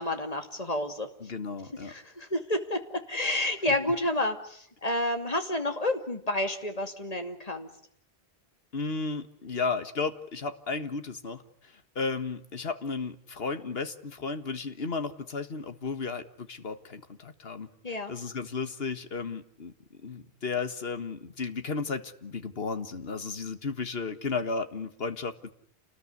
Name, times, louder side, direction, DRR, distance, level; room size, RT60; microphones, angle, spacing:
voice 1, 0.0-1.1 1.8-7.7 17.8-18.1, left 1 dB, 35° left, 6 dB, 2.7 m, -30 dB
voice 2, 1.2-1.9 8.7-11.4 12.0-19.7 20.0-25.5, left 4 dB, 65° left, 10 dB, 1.8 m, -34 dB
28.5 x 20.0 x 9.7 m, 0.66 s
omnidirectional pair, 1.1 m